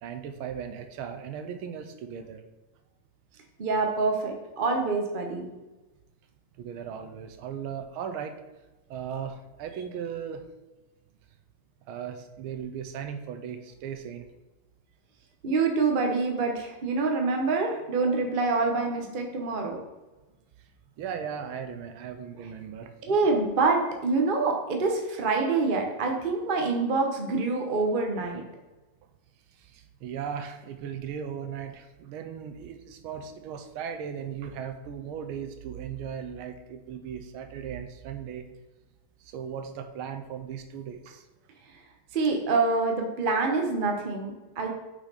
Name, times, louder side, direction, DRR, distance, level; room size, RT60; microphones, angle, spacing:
voice 1, 0.0-2.4 6.6-8.4 8.9-10.5 11.9-14.3 20.6-20.7 21.0-22.9 29.5-38.4 39.2-41.2, right 8 dB, 85° right, 7 dB, 1.5 m, -37 dB
voice 2, 3.6-5.5 15.4-19.8 23.0-28.4 42.1-44.7, right 3 dB, 40° right, 2 dB, 0.7 m, -26 dB
5.9 x 5.7 x 4.1 m, 1.1 s
omnidirectional pair, 2.3 m